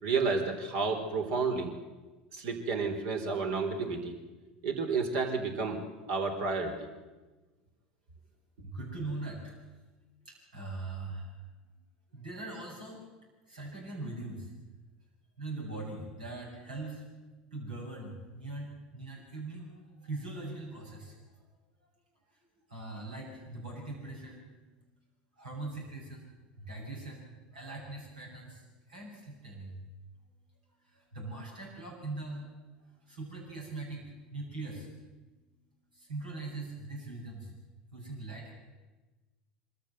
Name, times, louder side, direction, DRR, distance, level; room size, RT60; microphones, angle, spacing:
voice 1, 0.0-1.7 2.3-4.1 4.6-5.8 6.1-6.9, right 4 dB, 65° right, 3 dB, 3.9 m, -31 dB
voice 2, 8.6-9.5 10.3-11.3 12.1-13.0 13.5-14.5 15.4-17.0 17.5-21.2 22.7-24.7 25.4-26.3 26.6-27.2 27.5-29.8 30.9-32.5 32.8-34.9 35.9-37.5 37.9-38.5, right 2 dB, 85° right, -1 dB, 7.6 m, -41 dB
25.0 x 14.0 x 7.8 m, 1.2 s
hypercardioid pair, 80°, 4 cm